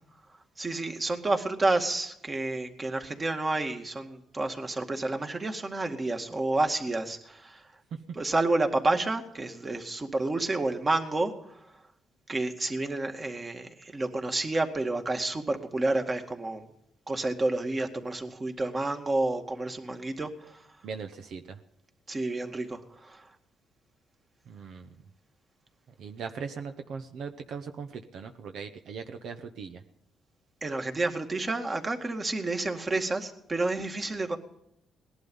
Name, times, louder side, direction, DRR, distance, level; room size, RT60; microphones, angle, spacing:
voice 1, 0.6-7.6 8.1-11.3 12.3-16.6 17.1-20.6 22.1-23.3 30.6-34.4, right 2 dB, 25° right, 5 dB, 2.1 m, -30 dB
voice 2, 20.8-21.6 24.5-24.9 26.0-29.8, right 5 dB, 70° right, 7 dB, 1.0 m, -39 dB
19.0 x 11.5 x 5.5 m, 0.79 s
cardioid pair, 90°, 0 cm